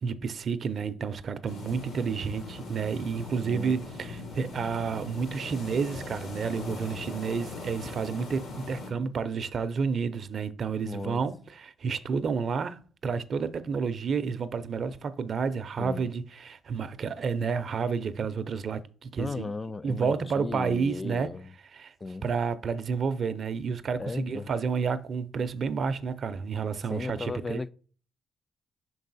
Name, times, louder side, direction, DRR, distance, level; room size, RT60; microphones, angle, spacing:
voice 1, 0.0-19.5 19.8-21.3 21.7-21.9 22.2-27.6, right 5 dB, 50° right, 0.6 m, -30 dB
sound 1, 1.5-8.9, left 3 dB, 70° left, 2.0 m, -40 dB
voice 2, 3.4-3.8 10.8-11.2 15.8-16.1 19.2-21.5 22.0-22.2 24.0-24.5 26.9-27.7, left 3 dB, 25° left, 0.3 m, -35 dB
5.7 x 4.7 x 4.0 m
cardioid pair, 90°, 0 cm